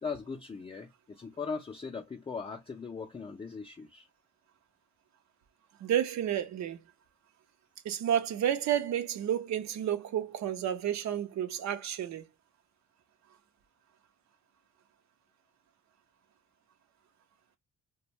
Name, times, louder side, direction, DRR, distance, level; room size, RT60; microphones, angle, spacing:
voice 1, 0.0-4.1, left 5 dB, 20° left, 0.5 m, -39 dB
voice 2, 5.8-6.8 7.8-12.2, right 10 dB, 65° right, 0.6 m, -31 dB
2.5 x 2.2 x 2.9 m
cardioid pair, 90°, 30 cm